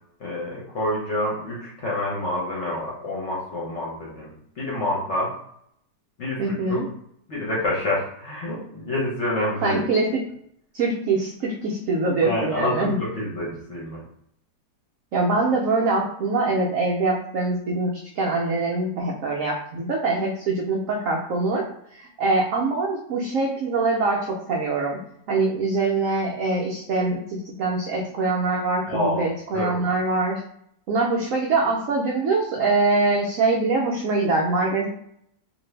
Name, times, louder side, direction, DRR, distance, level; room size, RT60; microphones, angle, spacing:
voice 1, 0.2-5.3 6.2-6.8 7.3-9.8 12.2-14.0 28.9-29.3 29.5-29.8, left 1 dB, 55° left, -5 dB, 0.9 m, -27 dB
voice 2, 6.4-6.9 9.6-10.2 10.7-13.0 15.1-21.6 21.9-25.0 25.3-30.4 30.9-34.9, right 3 dB, 85° right, -1 dB, 0.7 m, -23 dB
2.6 x 2.6 x 3.2 m, 0.71 s
omnidirectional pair, 2.0 m